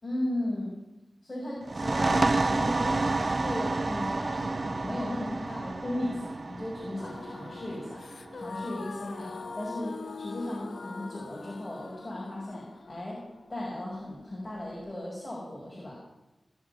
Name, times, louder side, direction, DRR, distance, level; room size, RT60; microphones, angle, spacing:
voice 1, 0.0-0.7 1.2-13.2 13.5-16.0, left 1 dB, 30° left, -5 dB, 6.0 m, -36 dB
sound 1, 1.6-9.0, right 3 dB, 45° right, 0.5 m, -30 dB
sound 2, 7.0-14.9, left 4 dB, 80° left, 1.0 m, -43 dB
20.0 x 7.4 x 9.9 m, 0.99 s
wide cardioid pair, 90°, 0 cm